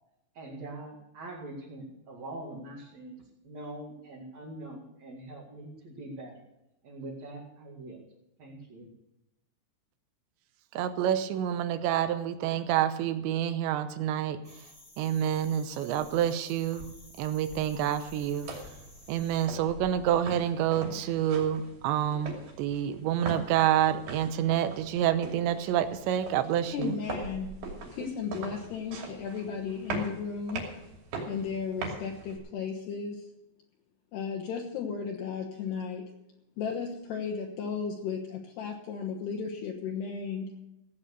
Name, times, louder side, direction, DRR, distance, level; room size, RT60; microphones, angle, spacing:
voice 1, 0.3-6.4 6.8-8.0 8.4-8.9, right 2 dB, 45° right, -4 dB, 2.9 m, -43 dB
voice 2, 10.7-14.4 15.0-16.9 17.2-18.5 19.1-26.9, right 10 dB, 80° right, 10 dB, 3.0 m, -28 dB
sound 1, 14.4-19.5, left 2 dB, 30° left, 1.3 m, -52 dB
sound 2, 18.2-32.4, right 3 dB, 65° right, 4.8 m, -41 dB
voice 3, 26.7-27.5 27.9-30.7 31.3-33.3 34.1-36.1 36.6-40.5, left 6 dB, 70° left, 1 dB, 3.1 m, -35 dB
16.5 x 8.7 x 6.7 m, 0.90 s
omnidirectional pair, 5.3 m